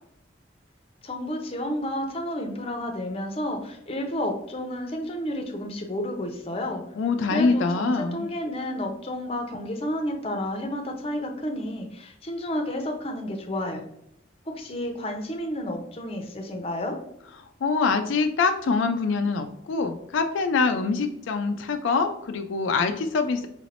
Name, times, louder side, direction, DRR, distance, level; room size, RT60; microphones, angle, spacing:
voice 1, 1.0-6.8 7.3-13.8 14.5-17.0, left 1 dB, 30° left, 3 dB, 0.6 m, -31 dB
voice 2, 7.0-8.3 17.6-23.5, left 4 dB, 80° left, 6 dB, 0.4 m, -24 dB
4.9 x 3.3 x 2.5 m, 0.76 s
head